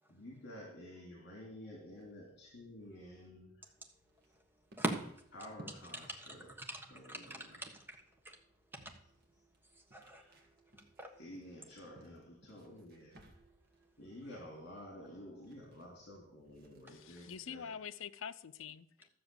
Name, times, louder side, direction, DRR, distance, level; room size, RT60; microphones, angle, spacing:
voice 1, 0.1-3.7 5.3-6.5 6.9-7.3 10.1-10.3 11.2-13.2 14.0-17.7, left 1 dB, 55° left, -2 dB, 3.0 m, -51 dB
sound 1, 1.9-17.8, right 1 dB, 50° right, 1.8 m, -64 dB
voice 2, 4.8-5.2 5.9-8.0 8.2-8.4 8.7-8.9 9.7-11.2 12.7-12.8 13.2-13.9, right 1 dB, 10° right, 3 dB, 1.4 m, -44 dB
voice 3, 16.9-19.1, left 7 dB, 75° left, 14 dB, 0.5 m, -46 dB
12.5 x 6.9 x 6.9 m, 0.67 s
head